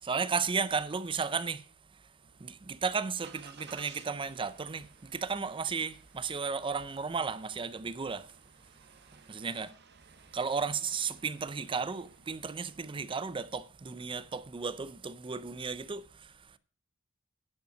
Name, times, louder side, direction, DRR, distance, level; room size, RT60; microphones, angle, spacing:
voice 1, 0.0-2.1 2.4-8.4 9.3-9.7 10.3-16.6, right 5 dB, 25° right, 0.5 m, -34 dB
Engine starting, 2.2-12.9, right 6 dB, 50° right, 1.2 m, -58 dB
10.5 x 5.6 x 6.7 m
head